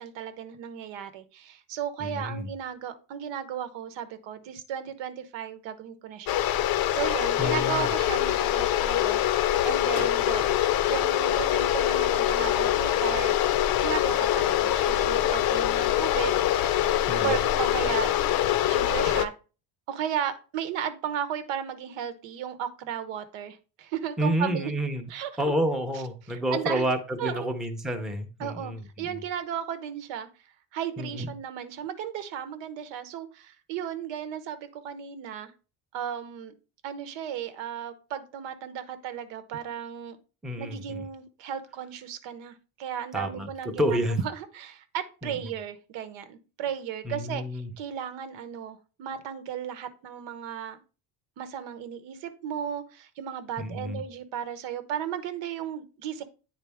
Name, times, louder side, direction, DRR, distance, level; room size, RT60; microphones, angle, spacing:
voice 1, 0.0-6.4 6.9-10.5 10.9-13.3 13.8-16.7 17.2-18.2 18.7-19.3 19.9-24.7 25.1-25.4 26.3-26.9 27.2-27.5 28.4-28.7 29.0-30.3 30.7-35.5 35.9-36.5 36.8-40.2 40.6-50.8 51.4-56.2, right 9 dB, 90° right, 1.0 m, -35 dB
voice 2, 2.0-2.5 7.4-7.9 17.1-17.4 24.2-25.1 25.4-29.2 31.0-31.3 40.4-41.1 43.1-44.2 45.2-45.5 47.0-47.7 53.6-54.0, equal, ahead, 0.6 m, -30 dB
sound 1, 6.3-19.2, left 12 dB, 55° left, 0.6 m, -24 dB
9.0 x 4.1 x 3.4 m
cardioid pair, 155°, 43 cm